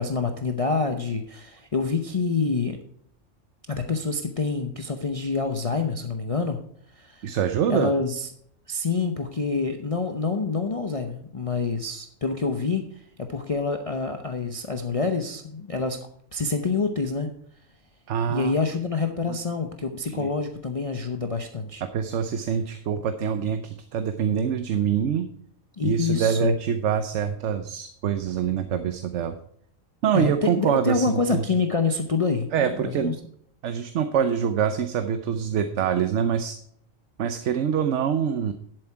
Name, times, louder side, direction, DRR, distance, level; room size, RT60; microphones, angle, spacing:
voice 1, 0.0-2.8 3.7-6.6 7.0-7.3 7.7-8.3 8.7-12.8 13.3-16.0 16.3-17.3 18.3-21.8 25.8-26.5 30.1-33.1, left 4 dB, 30° left, 4 dB, 0.7 m, -27 dB
voice 2, 7.2-7.9 18.1-18.5 19.3-19.4 20.1-20.3 21.8-25.3 25.8-29.3 30.0-31.4 32.5-33.1 33.6-36.6 37.2-38.5, right 8 dB, 65° right, 9 dB, 1.0 m, -25 dB
11.0 x 7.9 x 4.5 m, 0.65 s
omnidirectional pair, 1.4 m